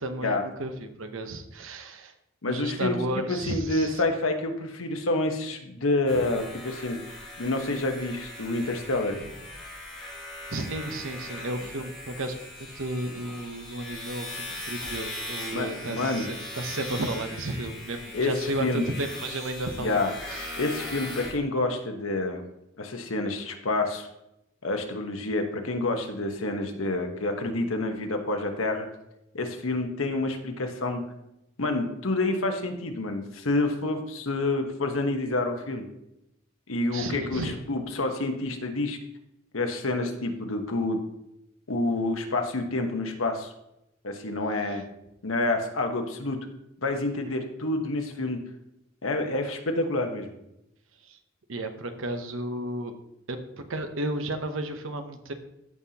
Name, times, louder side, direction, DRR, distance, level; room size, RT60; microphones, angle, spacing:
voice 1, 0.0-2.1 2.4-4.0 10.5-12.4 12.7-20.6 36.9-37.6 44.6-44.8 51.0-51.2 51.5-52.9 53.3-55.3, right 1 dB, 75° right, 7 dB, 0.9 m, -33 dB
voice 2, 2.4-3.0 3.3-7.0 7.4-9.2 15.5-16.3 18.1-18.8 19.8-20.1 20.6-22.4 22.8-24.1 24.6-28.9 29.3-31.0 31.6-35.8 36.7-39.0 39.5-41.0 41.7-43.5 44.0-44.8 45.2-46.5 46.8-48.4 49.0-50.3, left 2 dB, 90° left, 4 dB, 1.2 m, -28 dB
sound 1, 6.1-21.3, left 1 dB, 5° left, 3.3 m, -39 dB
14.5 x 5.6 x 2.9 m, 0.85 s
head